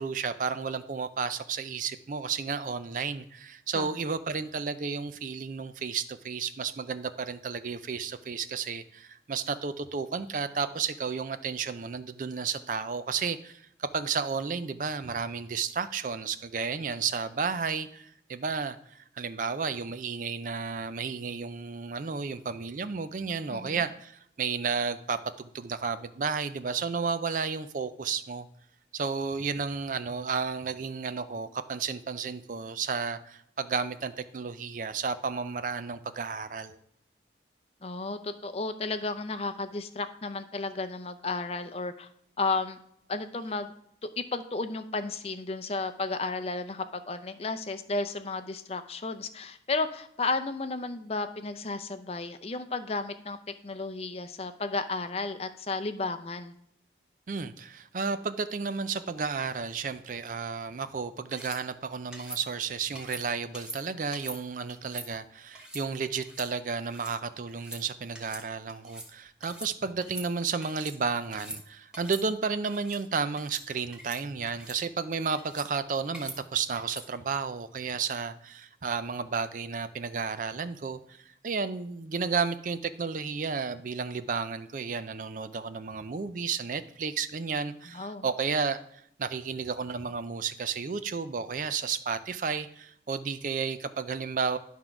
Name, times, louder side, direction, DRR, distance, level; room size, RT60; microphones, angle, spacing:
voice 1, 0.0-28.5 28.9-36.8 57.3-94.6, right 5 dB, 45° right, 11 dB, 0.4 m, -32 dB
voice 2, 23.5-23.8 37.8-42.1 42.4-42.8 43.1-43.7 44.0-53.4 53.6-56.5 87.9-88.3, left 3 dB, 35° left, 9 dB, 0.5 m, -33 dB
sound 1, 61.3-61.6 62.1-62.4 63.0-63.2 63.5-63.8 64.1-64.4 64.7-65.1 65.5-65.8 66.2-66.5 66.8-67.1 67.5-67.8 68.1-68.4 68.7-69.1 69.4-69.7 70.0-70.9 71.3-71.6 71.9-72.2 72.7-73.0 73.4-73.6 73.9-74.2 74.5-74.8 75.3-75.7 76.1-76.4 76.8-77.1, right 1 dB, 5° right, 1.2 m, -43 dB
11.0 x 3.7 x 5.9 m, 0.71 s
head